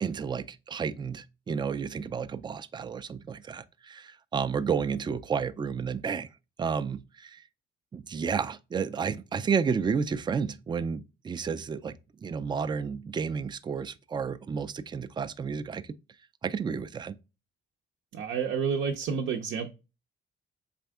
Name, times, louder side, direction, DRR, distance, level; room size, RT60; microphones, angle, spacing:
voice 1, 0.0-6.3 6.6-7.4 7.9-11.9 12.2-15.9 16.4-17.2, right 6 dB, 25° right, 0.4 m, -31 dB
voice 2, 18.1-19.7, right 6 dB, 75° right, 0.6 m, -29 dB
4.2 x 3.5 x 3.4 m
cardioid pair, 90°, 20 cm